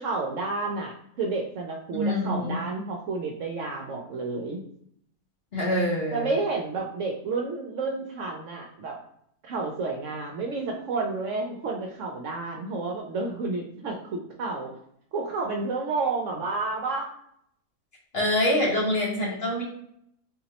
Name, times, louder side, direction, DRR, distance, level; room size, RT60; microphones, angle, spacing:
voice 1, 0.0-4.6 6.1-9.0 9.4-14.7 15.1-17.1, right 3 dB, 65° right, 1 dB, 0.8 m, -30 dB
voice 2, 1.9-2.6 5.5-6.3 18.1-19.6, left 1 dB, 45° left, -4 dB, 1.2 m, -25 dB
3.7 x 3.0 x 2.9 m, 0.71 s
omnidirectional pair, 1.6 m